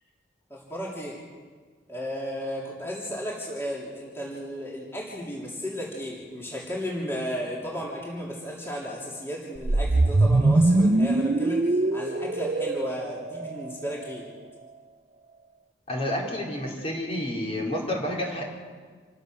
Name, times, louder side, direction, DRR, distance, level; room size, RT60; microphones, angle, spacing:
voice 1, 0.5-1.2 1.9-14.3, equal, 15° left, -4 dB, 3.3 m, -34 dB
sound 1, 9.6-13.9, right 2 dB, 40° right, 0.6 m, -22 dB
voice 2, 15.9-18.4, left 1 dB, 35° left, -1 dB, 3.9 m, -29 dB
27.5 x 15.0 x 6.4 m, 1.5 s
head